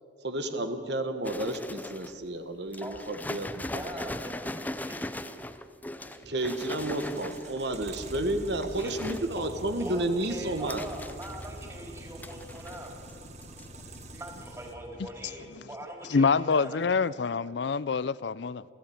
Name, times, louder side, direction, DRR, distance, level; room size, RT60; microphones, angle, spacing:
voice 1, 0.2-3.8 6.2-10.8, right 1 dB, 65° right, 1.5 m, -31 dB
sound 1, 1.2-2.2 2.7-7.7 8.4-9.3 9.7-11.8 12.2-13.2 13.4-13.7 13.9-14.0, left 1 dB, 10° left, 0.6 m, -39 dB
voice 2, 3.6-5.5 5.9-6.7 7.0-7.2 8.8-9.0 9.3-9.5 9.8-13.0 14.0-16.9, right 1 dB, 15° right, 3.9 m, -43 dB
sound 2, 6.7-14.7, right 1 dB, 35° right, 1.6 m, -45 dB
voice 3, 16.1-18.7, left 5 dB, 70° left, 0.5 m, -26 dB
29.0 x 14.0 x 8.7 m
head